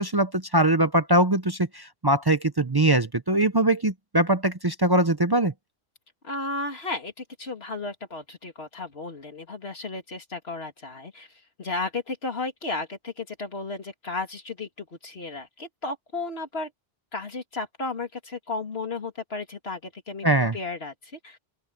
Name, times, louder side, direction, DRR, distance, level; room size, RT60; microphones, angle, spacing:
voice 1, 0.0-5.5 20.2-20.6, right 1 dB, 25° right, 0.7 m, -22 dB
voice 2, 6.2-11.3 11.6-16.7 17.1-20.3 20.5-21.4, left 3 dB, 80° left, 3.0 m, -34 dB
open air
omnidirectional pair, 1.0 m